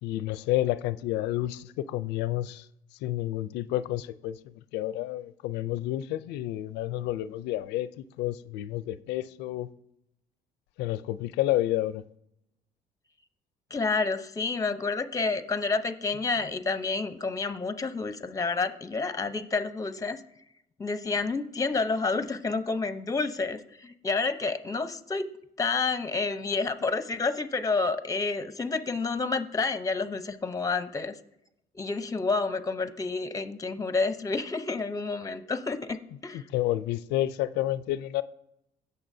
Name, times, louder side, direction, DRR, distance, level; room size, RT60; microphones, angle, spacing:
voice 1, 0.0-2.7 3.0-9.7 10.8-12.0 36.3-38.2, left 14 dB, 90° left, 0.5 m, -30 dB
voice 2, 13.7-20.2 20.8-25.3 25.6-31.1 31.7-36.5, left 4 dB, 20° left, 0.8 m, -29 dB
16.0 x 6.7 x 2.7 m
cardioid pair, 110°, 17 cm